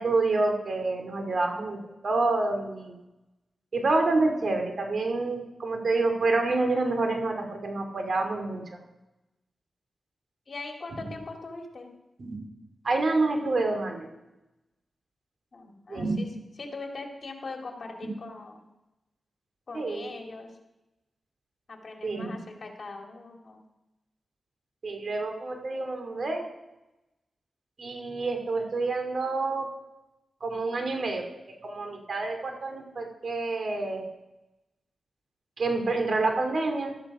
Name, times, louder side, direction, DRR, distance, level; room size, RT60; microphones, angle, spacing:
voice 1, 0.0-3.0 3.7-8.8 10.9-11.0 12.2-12.4 12.8-14.1 15.9-16.2 18.0-18.1 19.7-20.1 22.0-22.3 24.8-26.5 27.8-29.7 30.4-31.3 31.6-34.1 35.6-36.9, right 3 dB, 60° right, 4 dB, 2.7 m, -28 dB
voice 2, 10.5-11.9 15.5-16.3 16.6-18.6 19.7-20.5 21.7-23.6, left 3 dB, 55° left, 2 dB, 2.4 m, -41 dB
15.5 x 12.5 x 4.9 m, 0.97 s
cardioid pair, 65°, 0 cm